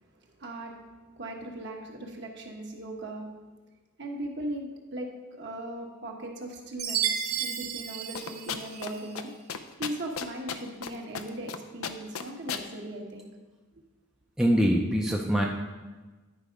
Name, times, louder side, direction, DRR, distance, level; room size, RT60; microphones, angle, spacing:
voice 1, 0.1-0.8 1.1-3.2 4.0-9.3 9.8-13.3, right 1 dB, 55° right, 1 dB, 1.2 m, -38 dB
Chime, 6.8-9.1, right 9 dB, 90° right, 0.8 m, -32 dB
sound 1, 8.2-8.9 9.2-9.3 9.5-10.9 11.1-11.6 11.8-12.6, left 7 dB, 85° left, 0.6 m, -34 dB
voice 2, 14.4-15.5, equal, 5° right, -2 dB, 0.5 m, -23 dB
9.9 x 4.8 x 5.1 m, 1.2 s
head